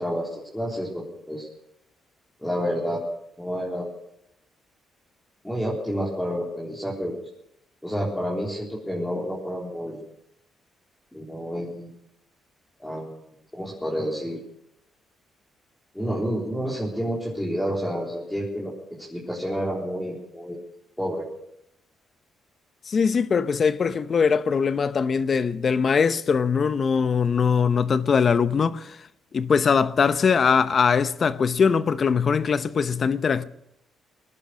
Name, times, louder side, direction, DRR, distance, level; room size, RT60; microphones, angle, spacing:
voice 1, 0.0-1.5 2.4-3.0 3.4-3.9 5.4-7.1 7.8-10.1 11.1-11.9 12.8-13.2 13.5-14.4 15.9-20.6 21.0-21.2, equal, 5° left, 4.0 m, -29 dB
voice 2, 22.8-33.4, left 6 dB, 45° left, 0.9 m, -22 dB
20.5 x 11.0 x 6.3 m
cardioid pair, 90°, 0 cm